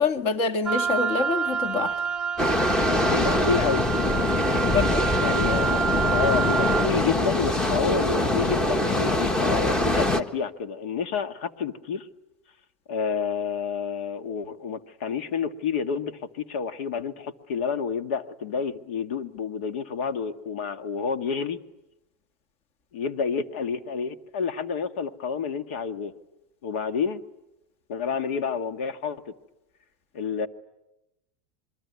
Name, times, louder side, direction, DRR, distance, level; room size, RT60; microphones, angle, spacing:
voice 1, 0.0-1.9 4.7-5.1, left 5 dB, 40° left, 1.8 m, -25 dB
Wind instrument woodwind instrument, 0.7-6.9, right 6 dB, 10° right, 1.3 m, -28 dB
sound 1, 2.4-10.2, left 1 dB, 10° left, 1.2 m, -23 dB
voice 2, 3.0-3.9 5.2-5.8 6.1-12.1 12.9-21.6 22.9-26.1 26.6-27.2 27.9-29.3 30.1-30.5, left 6 dB, 75° left, 1.7 m, -29 dB
27.0 x 23.0 x 9.6 m
supercardioid pair, 155°, 6 cm